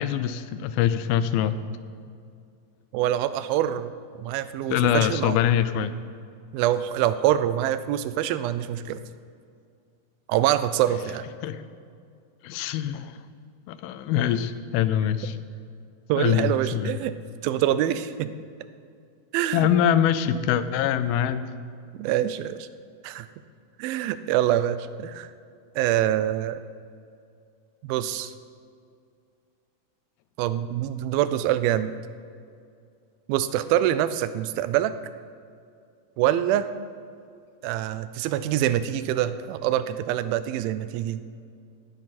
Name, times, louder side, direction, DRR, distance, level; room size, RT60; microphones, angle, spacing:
voice 1, 0.0-1.5 4.7-5.9 11.4-11.6 12.4-13.2 13.7-15.4 16.2-17.0 19.5-21.4, left 10 dB, 90° left, 13 dB, 2.5 m, -24 dB
voice 2, 2.9-3.9 4.2-5.4 6.5-9.0 10.3-11.2 16.1-17.1 17.4-18.3 19.3-19.7 22.0-22.7 23.0-23.3 23.8-25.3 25.8-26.6 27.8-28.3 30.4-31.9 33.3-34.9 36.2-36.7 37.6-41.2, right 12 dB, 85° right, 13 dB, 2.4 m, -25 dB
16.5 x 10.5 x 4.2 m, 2.3 s
omnidirectional pair, 4.2 m